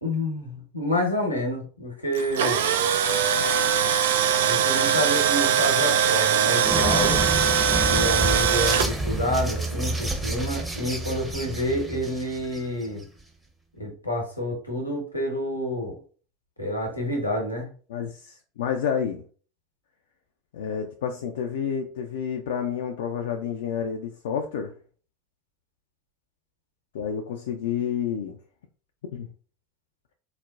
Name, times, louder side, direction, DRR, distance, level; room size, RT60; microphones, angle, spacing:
voice 1, 0.0-2.6 4.5-7.2 7.9-13.0 13.8-15.9 16.6-17.7, equal, 90° left, 1.0 m, -28 dB
Tools, 2.1-8.9, right 8 dB, 65° right, 0.3 m, -22 dB
sound 1, 6.6-13.0, right 2 dB, 10° right, 0.7 m, -29 dB
voice 2, 17.9-19.2 20.5-24.8 26.9-28.4 29.1-29.3, left 7 dB, 65° left, 0.3 m, -29 dB
4.0 x 2.1 x 2.4 m
figure-of-eight pair, 80°, 0 cm